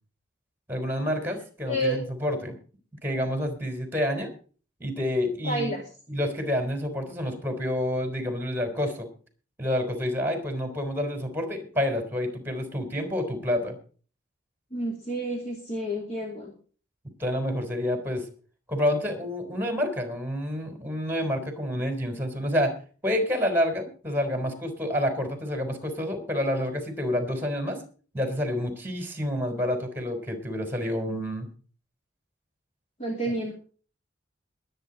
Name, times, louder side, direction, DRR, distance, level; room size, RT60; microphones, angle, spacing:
voice 1, 0.7-2.5 3.0-4.3 4.8-5.7 6.1-9.1 9.6-13.7 17.2-18.3 18.7-22.7 23.0-27.8 28.1-31.5, left 1 dB, 10° right, 6 dB, 3.9 m, -28 dB
voice 2, 1.7-2.0 5.4-5.8 14.7-16.5 33.0-33.5, equal, 35° left, 0 dB, 2.7 m, -29 dB
22.0 x 9.0 x 4.1 m, 0.40 s
head